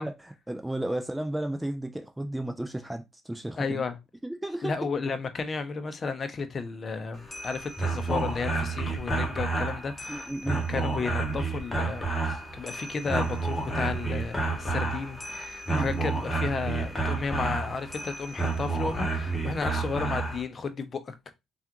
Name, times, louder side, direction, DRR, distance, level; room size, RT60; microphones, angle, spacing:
voice 1, 0.0-3.8 4.2-4.7 10.1-10.6 15.7-16.0, right 1 dB, 10° right, 0.4 m, -33 dB
voice 2, 3.6-4.0 4.6-21.3, left 4 dB, 40° left, 0.6 m, -33 dB
sound 1, 7.1-20.4, right 3 dB, 20° left, 1.0 m, -30 dB
3.4 x 2.4 x 2.9 m
cardioid pair, 85°, 0 cm